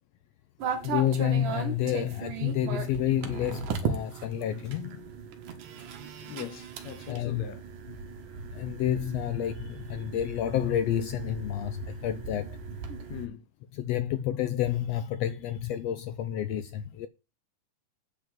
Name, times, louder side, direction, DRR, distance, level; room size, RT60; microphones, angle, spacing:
sound 1, 0.6-13.3, right 6 dB, 85° right, 3.0 m, -37 dB
voice 1, 0.8-5.0 7.1-7.4 8.5-12.6 13.8-17.1, left 10 dB, 85° left, 1.4 m, -29 dB
voice 2, 6.0-7.6 13.1-13.5, left 10 dB, 70° left, 1.9 m, -41 dB
9.2 x 5.0 x 7.5 m
omnidirectional pair, 3.6 m